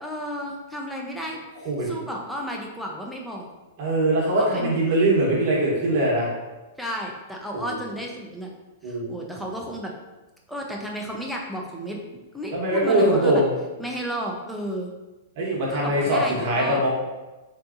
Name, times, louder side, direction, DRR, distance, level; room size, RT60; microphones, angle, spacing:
voice 1, 0.0-3.5 4.4-4.7 6.8-8.5 8.8-9.9 10.5-12.0 12.3-13.4 13.8-14.9 15.7-16.9, equal, ahead, -1 dB, 0.4 m, -33 dB
voice 2, 3.8-6.3 7.5-7.7 8.8-9.1 12.5-13.5 15.4-16.9, right 1 dB, 45° right, -4 dB, 1.0 m, -22 dB
3.5 x 2.7 x 2.5 m, 1.1 s
hypercardioid pair, 155°, 0 cm